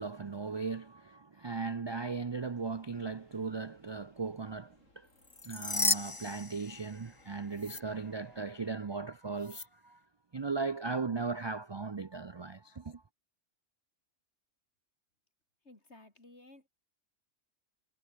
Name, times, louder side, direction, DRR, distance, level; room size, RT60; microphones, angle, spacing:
voice 1, 0.0-5.1 5.4-10.0 10.3-13.0, right 4 dB, 40° right, 0.4 m, -37 dB
sound 1, 2.4-8.7, left 1 dB, 85° left, 7.8 m, -66 dB
sound 2, 5.2-7.2 7.6-7.8 9.4-9.7, left 3 dB, 20° left, 1.0 m, -34 dB
voice 2, 15.6-16.7, left 2 dB, 60° left, 5.7 m, -56 dB
omnidirectional pair, 1.3 m